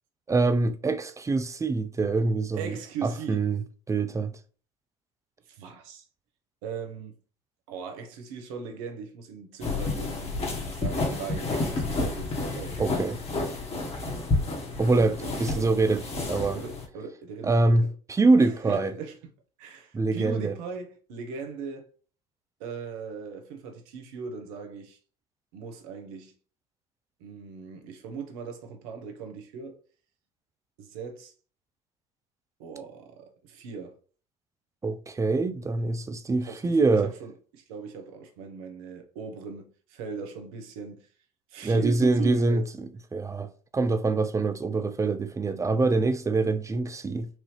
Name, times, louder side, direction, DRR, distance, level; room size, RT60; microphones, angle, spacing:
voice 1, 0.3-2.7 3.0-4.3 12.8-13.2 14.8-16.0 16.3-16.6 17.4-18.9 19.9-20.5 34.8-37.1 41.6-43.5 43.7-47.3, right 3 dB, 15° right, 0.5 m, -24 dB
voice 2, 2.5-3.5 5.5-6.1 6.6-7.2 7.7-13.0 15.2-15.7 16.6-17.9 18.4-19.2 19.6-21.9 22.6-25.0 25.5-26.3 27.2-29.8 30.8-31.3 32.6-34.0 36.5-41.1 41.5-42.7, right 5 dB, 70° right, 1.0 m, -39 dB
sound 1, 9.6-16.9, left 2 dB, 35° left, 1.7 m, -30 dB
4.5 x 2.8 x 3.2 m
hypercardioid pair, 70°, 18 cm